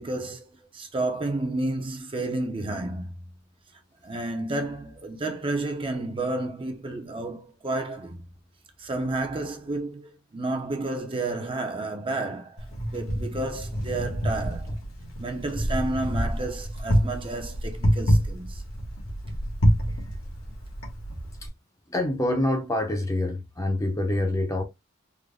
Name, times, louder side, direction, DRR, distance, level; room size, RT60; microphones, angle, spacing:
voice 1, 0.0-3.1 4.0-8.2 8.8-12.7 12.9-14.8 15.2-18.6, right 2 dB, 25° right, 0.6 m, -31 dB
Wind, 12.6-21.5, equal, 80° left, 1.2 m, -27 dB
voice 2, 21.9-24.6, left 1 dB, 15° left, 0.6 m, -26 dB
3.8 x 2.1 x 3.3 m
head